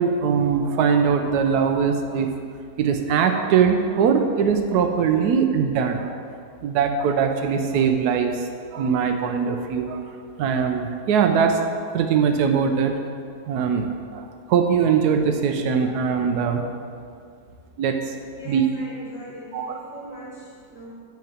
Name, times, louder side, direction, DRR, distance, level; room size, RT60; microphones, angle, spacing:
voice 1, 0.0-2.3 2.8-6.1 6.6-10.0 10.4-11.6 11.9-12.9 13.5-16.6 17.8-18.1 18.4-18.6 19.5-19.7, right 6 dB, 80° right, 5 dB, 1.2 m, -21 dB
voice 2, 18.3-21.0, right 1 dB, ahead, -9 dB, 1.6 m, -40 dB
6.1 x 5.9 x 7.2 m, 2.3 s
omnidirectional pair, 1.7 m